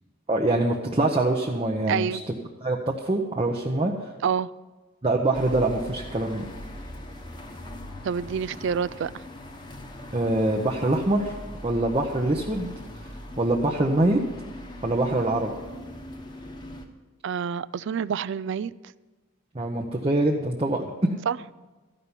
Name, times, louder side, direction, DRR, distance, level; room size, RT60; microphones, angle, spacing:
voice 1, 0.3-2.2 2.6-4.1 5.0-6.4 10.1-11.3 11.6-12.7 13.4-14.2 14.8-15.5 19.5-20.9, right 2 dB, 25° right, 0 dB, 0.8 m, -24 dB
voice 2, 1.9-2.2 4.2-4.5 8.0-9.1 17.2-18.7 21.3-21.4, right 7 dB, 55° right, 19 dB, 0.3 m, -27 dB
sound 1, 5.3-16.9, left 1 dB, 20° left, 1.0 m, -41 dB
13.5 x 5.7 x 9.6 m, 1.2 s
head